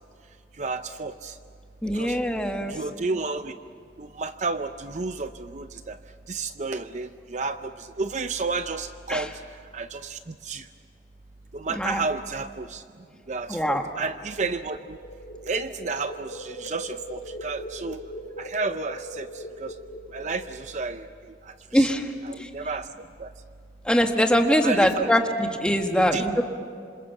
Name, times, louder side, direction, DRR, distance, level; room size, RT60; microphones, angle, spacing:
voice 1, 0.6-1.4 1.9-2.2 2.7-3.6 4.0-6.0 6.3-9.3 9.7-10.7 11.5-12.8 13.3-15.0 15.5-18.0 18.4-19.3 19.6-19.7 20.1-21.1 21.7-21.9 22.2-22.9 23.2-23.3 24.6-25.1 26.0-26.4, right 4 dB, 40° right, 10 dB, 0.6 m, -31 dB
voice 2, 1.8-2.7 9.1-9.2 11.8-12.0 13.5-13.8 21.7-22.0 23.9-26.4, equal, 5° left, 3 dB, 1.6 m, -22 dB
sound 1, 14.6-21.0, equal, 85° left, 5.0 m, -40 dB
27.0 x 27.0 x 7.3 m, 2.2 s
head